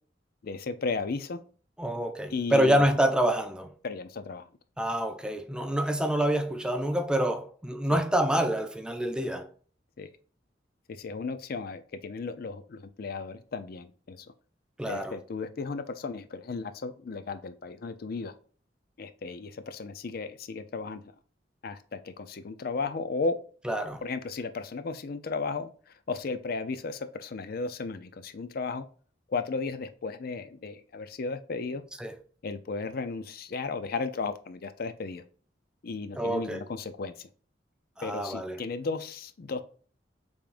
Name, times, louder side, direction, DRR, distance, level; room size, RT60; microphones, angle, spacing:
voice 1, 0.4-1.4 2.3-3.0 3.8-4.5 7.9-8.0 10.0-10.1 10.9-14.3 14.9-18.3 19.0-21.0 21.6-23.4 24.0-28.9 29.3-31.8 32.4-35.2 35.8-37.3 38.0-39.6, left 4 dB, 55° left, 0.5 m, -35 dB
voice 2, 1.8-3.8 4.8-9.5 14.8-15.2 23.7-24.0 32.0-32.2 36.2-36.6 38.0-38.6, right 1 dB, 5° right, 0.3 m, -27 dB
5.0 x 3.5 x 2.5 m
head